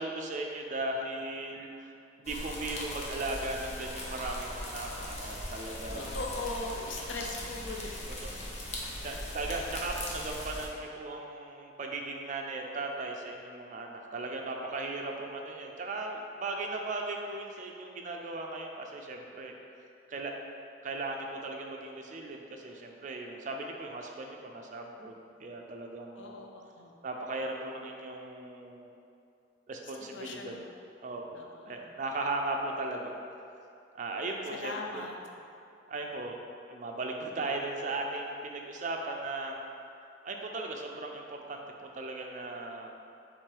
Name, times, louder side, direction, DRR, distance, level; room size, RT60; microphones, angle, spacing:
voice 1, 0.0-6.2 8.2-8.3 9.0-19.5 20.1-20.3 20.8-26.5 27.0-28.9 29.7-30.6 31.0-33.1 33.9-35.1 35.9-36.4 36.7-39.6 40.2-41.6 41.9-42.9, right 2 dB, 40° right, 2 dB, 0.4 m, -37 dB
sound 1, 2.2-10.7, left 1 dB, 35° left, 0.6 m, -39 dB
voice 2, 5.9-8.0 9.0-9.2 13.7-13.8 26.2-26.9 30.1-30.7 31.3-31.8 34.5-35.1, left 3 dB, 85° left, 1 dB, 0.5 m, -40 dB
3.6 x 3.2 x 4.5 m, 2.6 s
head